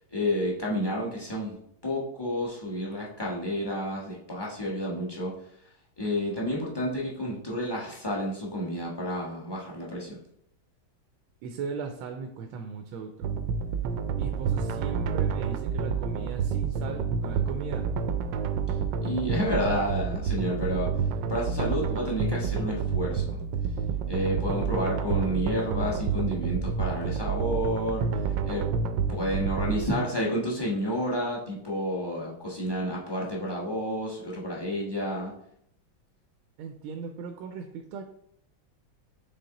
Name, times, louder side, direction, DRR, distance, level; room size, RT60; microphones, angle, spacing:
voice 1, 0.1-1.6 1.8-5.3 6.0-10.2 19.0-20.9 21.3-23.4 24.1-28.0 28.4-28.7 29.1-35.3, equal, 15° left, -5 dB, 1.1 m, -30 dB
voice 2, 11.4-13.3 14.2-17.9 29.7-30.0 36.6-38.0, right 5 dB, 90° right, 5 dB, 1.4 m, -38 dB
sound 1, 13.2-30.0, right 6 dB, 75° right, 1.1 m, -29 dB
6.6 x 3.8 x 3.9 m, 0.72 s
omnidirectional pair, 2.2 m